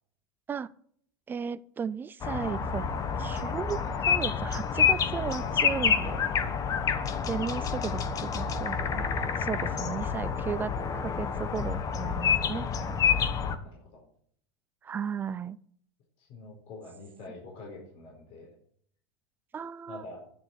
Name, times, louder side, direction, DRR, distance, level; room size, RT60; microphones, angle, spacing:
voice 1, 1.3-2.8 3.2-6.2 7.3-12.7 14.8-15.6 19.5-20.0, right 7 dB, 15° right, 0.4 m, -35 dB
sound 1, 2.2-13.6, left 6 dB, 25° left, 1.1 m, -28 dB
voice 2, 9.6-9.9 13.6-14.0 16.2-18.5 19.9-20.2, left 2 dB, 45° left, 4.5 m, -45 dB
10.0 x 7.4 x 8.9 m
supercardioid pair, 155°, 14 cm